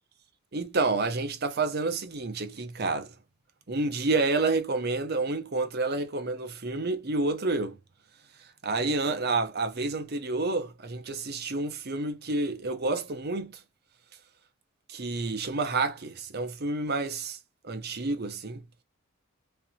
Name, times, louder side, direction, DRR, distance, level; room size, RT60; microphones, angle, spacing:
voice 1, 0.5-3.1 3.7-7.8 8.6-13.5 14.9-17.4 17.6-18.6, right 3 dB, 45° right, 0.8 m, -29 dB
3.9 x 3.2 x 2.9 m
head